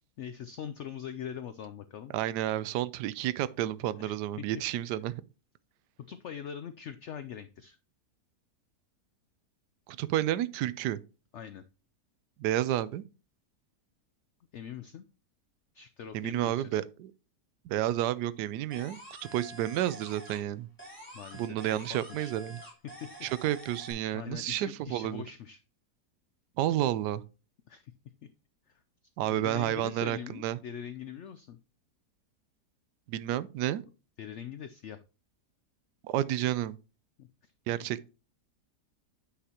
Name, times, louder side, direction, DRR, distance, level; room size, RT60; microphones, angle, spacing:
voice 1, 0.2-2.1 4.0-4.4 6.1-7.8 11.3-11.6 14.5-15.1 15.7-16.8 21.1-22.3 23.0-23.1 24.1-25.6 27.7-27.9 28.7-28.8 29.3-31.6 34.2-35.0 37.2-37.5, left 8 dB, 75° left, 0.6 m, -42 dB
voice 2, 2.1-5.2 10.0-11.0 12.4-13.0 16.1-17.1 17.6-19.0 19.3-20.7 21.3-22.6 23.2-25.2 26.6-27.2 29.2-30.6 33.1-33.8 36.0-36.8 37.7-38.1, right 13 dB, 80° right, 1.1 m, -30 dB
sound 1, 18.7-20.5 20.8-23.9, equal, 5° left, 3.5 m, -48 dB
9.7 x 5.8 x 2.9 m
omnidirectional pair, 1.8 m